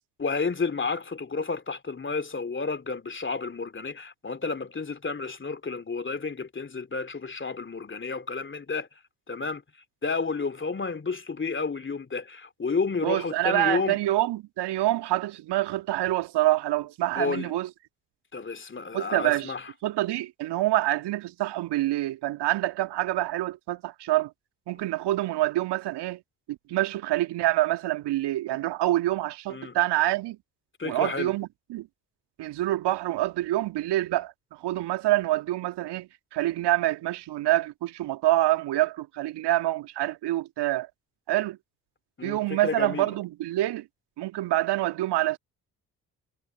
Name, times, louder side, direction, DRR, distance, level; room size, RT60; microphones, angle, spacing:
voice 1, 0.2-8.9 9.3-9.6 10.0-14.0 17.2-17.5 18.3-19.7 29.5-29.8 30.8-31.3 42.2-43.1, left 4 dB, 25° left, 2.7 m, -31 dB
voice 2, 13.0-17.7 18.9-19.5 19.8-24.3 24.7-26.2 26.5-30.4 30.8-31.9 32.4-40.9 41.3-41.6 42.2-43.9 44.2-45.4, right 15 dB, 60° right, 2.2 m, -26 dB
figure-of-eight pair, 45°, 46 cm